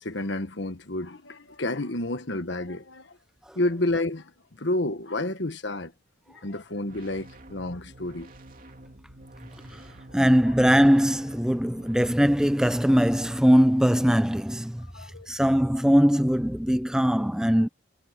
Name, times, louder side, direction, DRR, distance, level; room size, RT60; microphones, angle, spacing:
voice 1, 0.0-3.1 3.5-4.3 4.6-5.9 6.3-8.3 14.9-15.3, left 2 dB, 60° left, 1.5 m, -30 dB
sound 1, 6.8-12.1, right 1 dB, 45° right, 3.4 m, -48 dB
voice 2, 10.1-14.9 15.3-17.7, equal, 5° right, 0.6 m, -21 dB
head